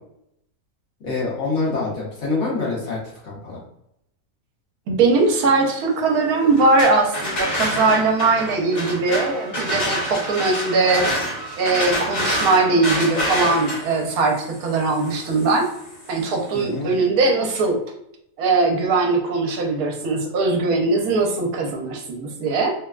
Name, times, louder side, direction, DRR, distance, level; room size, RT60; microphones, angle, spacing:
voice 1, 1.0-3.6 16.5-16.9, left 3 dB, 55° left, -5 dB, 1.2 m, -26 dB
voice 2, 4.9-11.1 11.6-15.7 16.1-17.8 18.4-22.7, right 3 dB, 75° right, 2 dB, 1.1 m, -20 dB
sound 1, 6.5-16.3, equal, 35° left, 0.8 m, -27 dB
3.2 x 2.2 x 2.3 m, 0.77 s
omnidirectional pair, 1.6 m